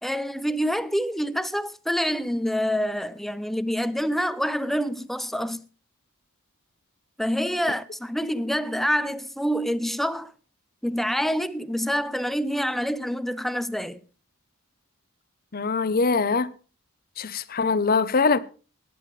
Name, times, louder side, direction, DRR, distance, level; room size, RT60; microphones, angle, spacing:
voice 1, 0.0-5.6 7.2-10.3 10.8-14.0, equal, ahead, 0.5 m, -26 dB
voice 2, 15.5-16.5 17.2-18.4, left 4 dB, 45° left, 0.7 m, -22 dB
18.5 x 10.5 x 3.2 m
head